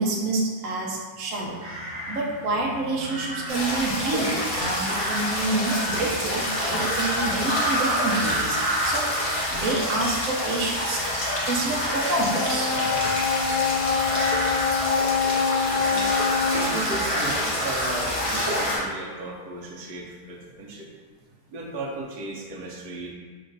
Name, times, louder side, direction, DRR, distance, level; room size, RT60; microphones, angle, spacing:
voice 1, 0.0-1.6 2.1-11.1 11.4-13.0, right 2 dB, 65° right, -2 dB, 1.0 m, -28 dB
sound 1, 1.4-18.8, right 1 dB, 25° right, 0.6 m, -32 dB
sound 2, 3.5-18.8, left 1 dB, 30° left, 0.6 m, -28 dB
sound 3, 12.3-16.8, left 6 dB, 90° left, 1.2 m, -25 dB
voice 2, 15.5-16.1 16.5-20.9 21.5-23.1, right 2 dB, 80° right, -2 dB, 1.2 m, -35 dB
5.3 x 2.9 x 2.6 m, 1.5 s
omnidirectional pair, 1.6 m